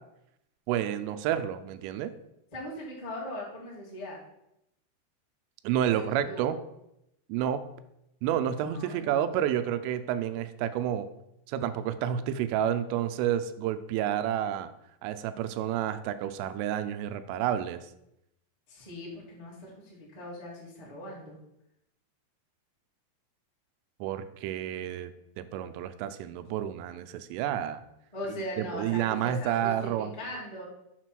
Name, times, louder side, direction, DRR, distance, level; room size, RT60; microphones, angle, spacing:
voice 1, 0.7-2.1 5.6-6.6 7.3-7.7 8.2-11.1 11.5-14.7 15.0-17.8 24.0-25.1 25.4-27.8 28.6-30.1, right 10 dB, 90° right, 11 dB, 3.1 m, -30 dB
voice 2, 2.5-4.2 5.9-6.5 8.5-9.2 18.7-21.4 28.1-30.6, equal, 25° left, -6 dB, 0.8 m, -40 dB
7.0 x 5.9 x 4.5 m, 0.81 s
omnidirectional pair, 5.6 m